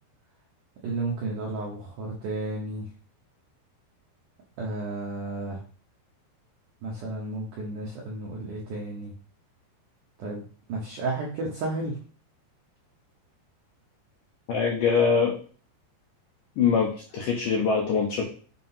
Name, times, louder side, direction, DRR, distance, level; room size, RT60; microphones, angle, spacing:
voice 1, 0.8-2.9 4.6-5.6 6.8-9.1 10.2-12.0, right 2 dB, 80° right, -2 dB, 1.8 m, -32 dB
voice 2, 14.5-15.4 16.6-18.2, left 5 dB, 80° left, -1 dB, 1.9 m, -23 dB
7.4 x 2.9 x 5.6 m, 0.41 s
omnidirectional pair, 5.2 m